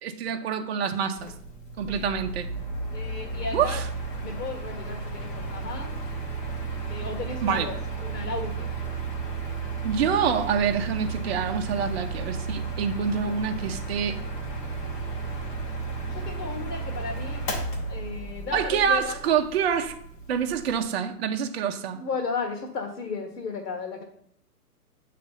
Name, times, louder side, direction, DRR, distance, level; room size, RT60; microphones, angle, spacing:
voice 1, 0.0-1.3 1.8-2.5 3.5-3.9 7.4-7.7 9.8-14.2 18.5-19.9 20.3-22.0, right 7 dB, 40° right, 0.6 m, -26 dB
Mechanical fan, 1.2-20.8, right 3 dB, 20° left, 0.7 m, -33 dB
voice 2, 2.9-3.8 4.2-5.9 6.9-8.7 16.1-17.4 17.9-19.2 21.9-24.0, left 4 dB, 70° left, 1.6 m, -34 dB
7.8 x 3.3 x 5.6 m
hypercardioid pair, 140°, 48 cm